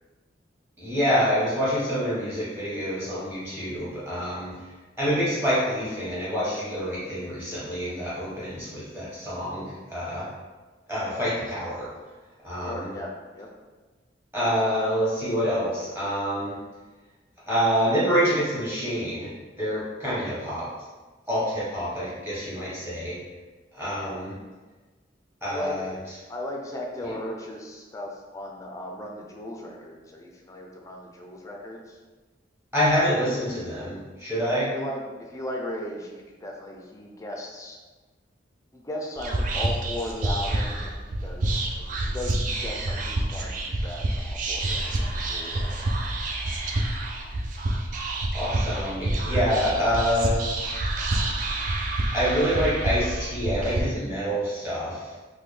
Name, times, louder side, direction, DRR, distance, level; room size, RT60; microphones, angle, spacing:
voice 1, 0.8-4.5 5.0-10.3 10.9-11.9 12.4-12.9 14.3-16.6 17.5-19.3 19.6-20.7 21.3-23.2 23.7-24.3 25.4-25.9 27.0-27.1 32.7-34.7 48.3-50.4 52.1-55.1, equal, 10° right, -9 dB, 1.2 m, -26 dB
voice 2, 12.6-13.5 25.4-25.8 26.3-32.0 34.7-37.8 38.7-45.9, left 1 dB, 15° left, 0 dB, 0.4 m, -36 dB
Whispering, 39.2-53.8, right 2 dB, 45° right, 0.4 m, -28 dB
3.6 x 2.2 x 3.2 m, 1.3 s
head